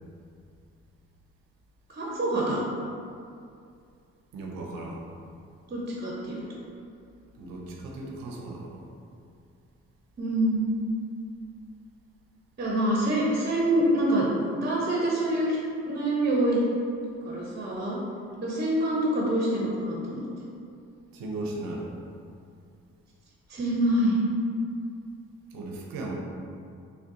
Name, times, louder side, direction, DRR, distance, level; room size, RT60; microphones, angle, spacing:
voice 1, 1.9-2.6 5.7-6.4 10.2-10.7 12.6-14.3 14.6-15.6 15.8-16.6 17.2-18.0 18.4-20.2 23.5-24.2, right 1 dB, 30° right, -4 dB, 0.6 m, -26 dB
voice 2, 4.3-5.0 7.4-8.8 21.1-21.9 25.5-26.1, right 2 dB, 80° right, -1 dB, 0.6 m, -36 dB
3.7 x 2.1 x 2.6 m, 2.4 s
hypercardioid pair, 45°, 35 cm